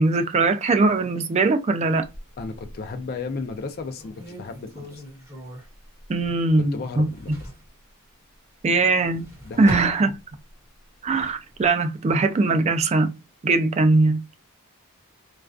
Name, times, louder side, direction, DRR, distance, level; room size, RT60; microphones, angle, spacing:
voice 1, 0.0-2.1 6.1-7.1 8.6-9.3 9.6-10.1 11.0-13.1 13.4-14.2, right 3 dB, 30° right, 0.3 m, -20 dB
sound 1, 2.0-3.0 3.5-3.6 3.9-6.6 6.9-7.7 8.8-10.6 11.0-11.7, equal, 15° right, 1.2 m, -39 dB
voice 2, 2.4-5.0 6.7-7.3 9.4-9.7, left 4 dB, 45° left, 0.4 m, -34 dB
2.3 x 2.3 x 2.2 m
head